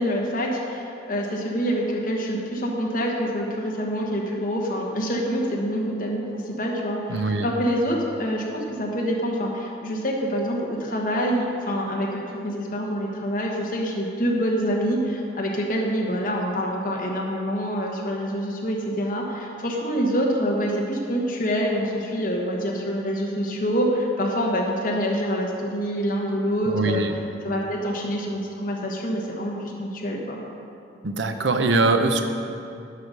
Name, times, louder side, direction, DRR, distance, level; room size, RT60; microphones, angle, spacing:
voice 1, 0.0-27.0 27.4-29.5 29.8-30.4, equal, 50° left, -2 dB, 1.2 m, -26 dB
voice 2, 7.1-7.5 26.7-27.1 31.0-32.2, right 3 dB, 85° right, 7 dB, 0.7 m, -22 dB
11.5 x 4.9 x 6.6 m, 2.6 s
head